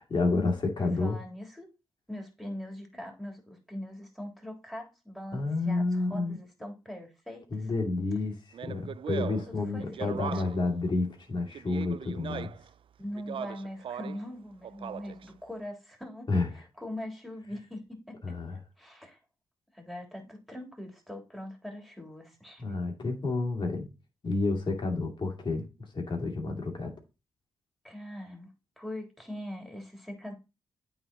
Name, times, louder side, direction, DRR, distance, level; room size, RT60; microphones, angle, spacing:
voice 1, 0.0-1.2 5.3-6.4 7.5-12.5 16.3-16.5 18.2-18.6 22.6-23.9 24.2-26.9, left 3 dB, 45° left, 2.4 m, -30 dB
voice 2, 0.8-1.7 2.1-7.7 9.5-10.4 13.0-16.3 16.8-18.4 18.8-19.2 19.7-22.6 27.8-28.5 28.8-30.3, left 1 dB, ahead, 3.3 m, -42 dB
Speech, 8.5-10.7 11.5-12.7 13.1-14.3 14.6-15.3, right 8 dB, 55° right, 0.4 m, -39 dB
8.8 x 3.9 x 4.2 m
cardioid pair, 60°, 11 cm